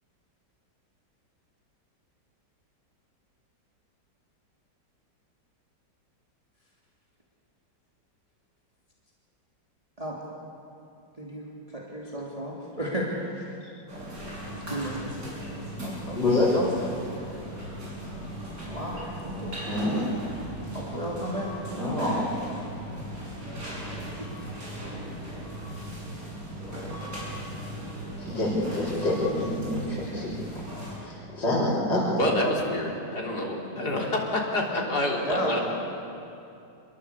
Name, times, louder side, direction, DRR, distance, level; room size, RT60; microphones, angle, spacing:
voice 1, 11.2-13.3 14.5-15.3 15.8-16.2 16.4-16.7 18.7-19.5 20.7-21.5 24.2-24.3 24.8-24.9 33.7-34.0 35.2-35.6, equal, 20° right, -4 dB, 3.0 m, -34 dB
sound 1, 13.9-31.0, right 1 dB, 50° right, 8.1 m, -38 dB
voice 2, 16.1-16.5 19.7-20.1 21.7-22.3 28.2-30.3 31.0-32.3, left 1 dB, 90° left, -11 dB, 6.0 m, -26 dB
voice 3, 32.2-35.6, left 1 dB, 60° left, -1 dB, 4.2 m, -27 dB
27.5 x 21.5 x 8.3 m, 2.7 s
omnidirectional pair, 1.9 m